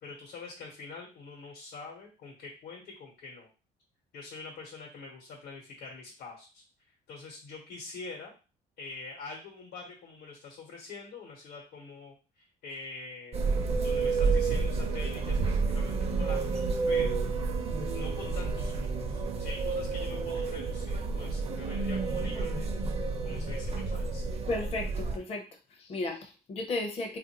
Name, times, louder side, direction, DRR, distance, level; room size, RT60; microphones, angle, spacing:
voice 1, 0.0-3.5 4.1-6.6 7.1-8.3 8.8-13.4 13.8-17.2 17.9-22.8 23.2-24.2, left 4 dB, 85° left, -1 dB, 1.0 m, -45 dB
sound 1, 13.3-25.2, right 4 dB, 35° right, 0.5 m, -30 dB
voice 2, 24.5-25.5 25.7-27.2, left 2 dB, 35° left, 3 dB, 0.6 m, -34 dB
3.2 x 2.5 x 2.8 m, 0.34 s
cardioid pair, 110°, 17 cm